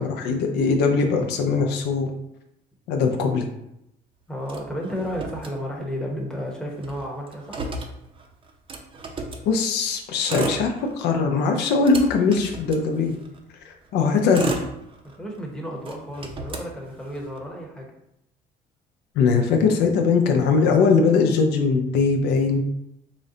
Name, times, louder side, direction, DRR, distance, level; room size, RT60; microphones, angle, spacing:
voice 1, 0.0-2.1 2.9-3.5 9.5-13.1 13.7-14.5 19.2-22.6, left 4 dB, 85° left, 3 dB, 0.6 m, -21 dB
voice 2, 4.3-7.6 15.2-17.9, equal, 5° left, -1 dB, 0.8 m, -32 dB
Motor vehicle (road), 4.4-6.1 6.4-6.5 6.7-9.5 10.1-11.2 11.6-13.4 14.0-15.4 15.8-17.4, right 3 dB, 30° right, 0.5 m, -34 dB
4.0 x 2.1 x 3.7 m, 0.82 s
cardioid pair, 110°, 17 cm